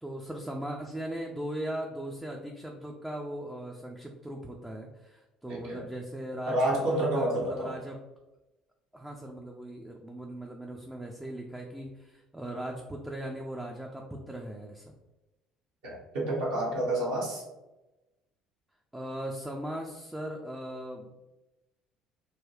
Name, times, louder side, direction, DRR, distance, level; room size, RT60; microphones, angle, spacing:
voice 1, 0.0-8.0 8.9-14.9 18.9-21.1, right 1 dB, 5° right, 0 dB, 0.4 m, -39 dB
voice 2, 5.5-5.8 6.5-7.7 15.8-17.4, right 1 dB, 65° right, -5 dB, 1.1 m, -29 dB
3.9 x 2.2 x 3.0 m, 1.0 s
figure-of-eight pair, 55°, 3 cm